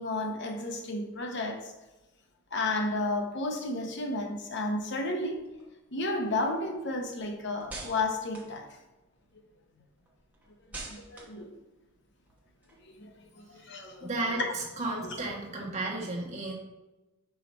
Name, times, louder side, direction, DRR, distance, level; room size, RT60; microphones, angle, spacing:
voice 1, 0.0-1.7 2.5-5.4 5.9-8.7 10.9-11.5 12.8-14.5 15.0-15.2, left 2 dB, 55° left, 0.8 m, -32 dB
sound 1, 5.2-9.4 9.7-13.2, right 2 dB, 5° right, 1.0 m, -48 dB
voice 2, 14.0-16.5, right 2 dB, 35° right, 1.3 m, -33 dB
5.6 x 4.9 x 4.0 m
head